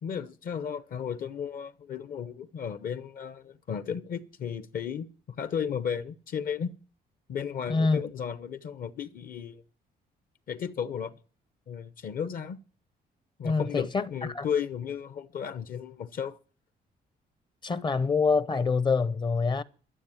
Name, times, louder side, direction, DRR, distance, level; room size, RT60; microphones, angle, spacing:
voice 1, 0.0-6.7 7.3-9.6 10.5-11.1 11.7-12.6 13.4-16.4, left 7 dB, 55° left, 0.8 m, -34 dB
voice 2, 7.7-8.0 13.4-14.4 17.6-19.6, left 4 dB, 30° left, 0.6 m, -26 dB
12.5 x 7.1 x 8.9 m
cardioid pair, 135°, 17 cm